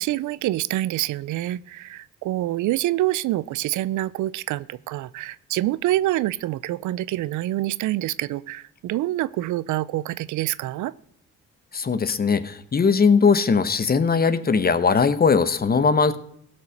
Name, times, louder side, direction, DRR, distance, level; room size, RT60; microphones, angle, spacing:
voice 1, 0.0-10.9, right 15 dB, 75° right, 19 dB, 0.5 m, -26 dB
voice 2, 11.7-16.2, left 5 dB, 30° left, 12 dB, 0.9 m, -19 dB
16.5 x 5.8 x 6.5 m, 0.70 s
cardioid pair, 90°, 30 cm